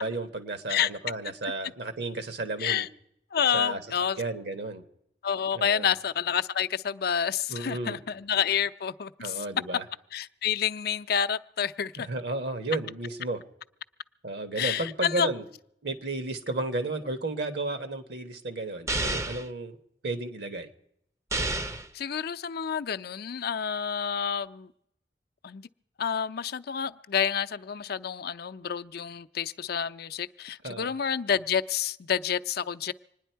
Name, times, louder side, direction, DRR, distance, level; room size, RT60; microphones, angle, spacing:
voice 1, 0.0-2.8 3.5-3.8 4.2-4.8 5.5-5.9 7.5-8.0 9.2-9.8 12.0-13.4 14.2-15.4 15.8-19.8 20.0-20.7 30.6-30.9, right 2 dB, 70° right, 1.4 m, -33 dB
voice 2, 3.3-4.2 5.2-9.4 10.1-12.1 14.6-15.3 21.9-24.7 25.4-25.7 26.0-32.9, left 8 dB, 60° left, 0.5 m, -29 dB
sound 1, 18.9-19.5 21.3-21.9, right 2 dB, 15° right, 0.6 m, -29 dB
26.0 x 10.0 x 4.5 m
head